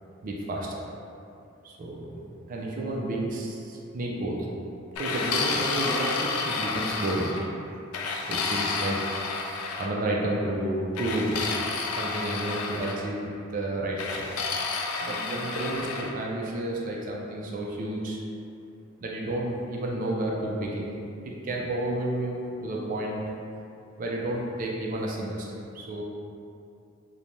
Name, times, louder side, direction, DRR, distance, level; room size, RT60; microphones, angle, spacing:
voice 1, 0.2-0.8 1.6-4.4 5.0-7.4 8.3-9.0 9.8-11.5 12.0-14.5 15.0-18.2 19.0-21.0 21.2-23.3 24.0-26.0, right 1 dB, 40° right, -2 dB, 0.3 m, -31 dB
sound 1, 5.0-7.5 7.9-9.9 11.0-13.0 14.0-16.1, left 4 dB, 80° left, 0.3 m, -30 dB
3.1 x 2.1 x 2.6 m, 2.6 s
head